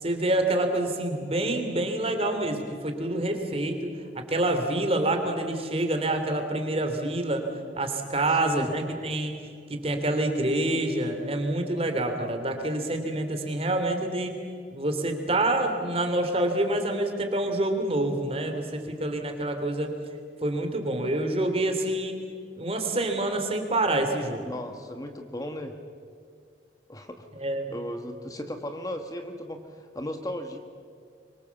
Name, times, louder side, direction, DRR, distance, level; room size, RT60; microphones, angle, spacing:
voice 1, 0.0-3.8 4.1-7.4 7.8-9.3 9.7-14.3 14.7-19.9 20.4-22.2 22.6-24.5 27.4-27.7, right 1 dB, 35° right, 5 dB, 3.1 m, -27 dB
voice 2, 24.5-25.7 26.9-27.3 27.7-30.6, left 1 dB, 20° left, 5 dB, 1.4 m, -36 dB
25.5 x 24.0 x 7.2 m, 2.2 s
head